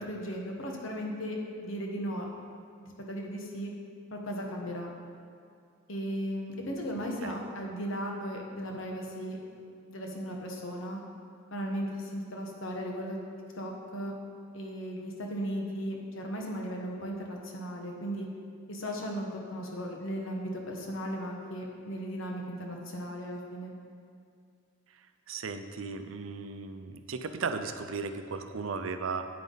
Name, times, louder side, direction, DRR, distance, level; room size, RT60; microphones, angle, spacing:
voice 1, 0.1-2.3 2.8-3.7 4.1-4.9 5.9-9.4 9.9-11.0 11.5-13.2 13.6-14.1 14.5-18.3 18.7-23.7, equal, 80° left, 0 dB, 1.4 m, -36 dB
voice 2, 25.3-29.3, right 4 dB, 85° right, 8 dB, 0.6 m, -36 dB
9.2 x 8.4 x 4.0 m, 2.3 s
head